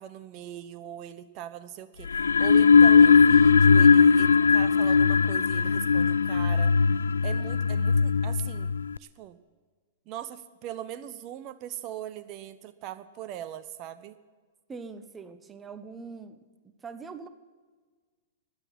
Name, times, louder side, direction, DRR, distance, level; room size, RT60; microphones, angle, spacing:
voice 1, 0.0-6.8 7.2-8.7 9.0-9.4 10.1-14.2, right 11 dB, 40° right, 12 dB, 0.8 m, -40 dB
sound 1, 2.0-9.0, left 5 dB, 80° left, 0.3 m, -19 dB
voice 2, 14.7-16.4 16.6-17.3, right 4 dB, 15° right, 11 dB, 1.1 m, -42 dB
17.0 x 11.5 x 6.0 m, 1.5 s
figure-of-eight pair, 105°, 0 cm